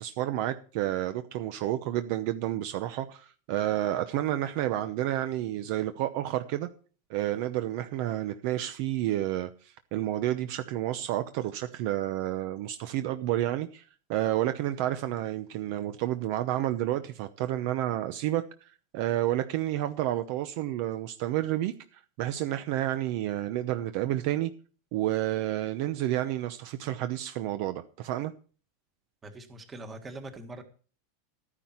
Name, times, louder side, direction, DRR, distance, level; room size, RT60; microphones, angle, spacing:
voice 1, 0.0-6.7 7.1-13.8 14.1-18.4 18.9-21.7 22.2-24.5 24.9-28.3, right 13 dB, 50° right, 0.8 m, -30 dB
voice 2, 29.2-30.6, right 2 dB, 15° right, 1.6 m, -42 dB
13.5 x 9.9 x 4.5 m
supercardioid pair, 165°, 0 cm